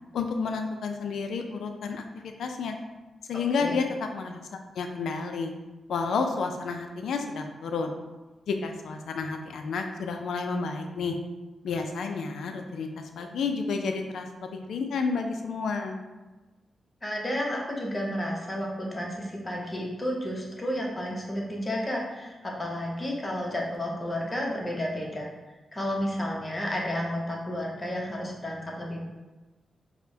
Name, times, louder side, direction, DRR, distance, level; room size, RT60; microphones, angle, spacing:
voice 1, 0.1-2.8 3.3-3.8 4.1-4.4 4.8-5.5 5.9-8.0 8.5-11.2 11.6-16.0, left 4 dB, 85° left, 5 dB, 0.3 m, -31 dB
voice 2, 17.0-25.3 25.7-29.0, equal, 25° left, -2 dB, 0.8 m, -31 dB
4.3 x 2.1 x 2.7 m, 1.2 s
cardioid pair, 65°, 0 cm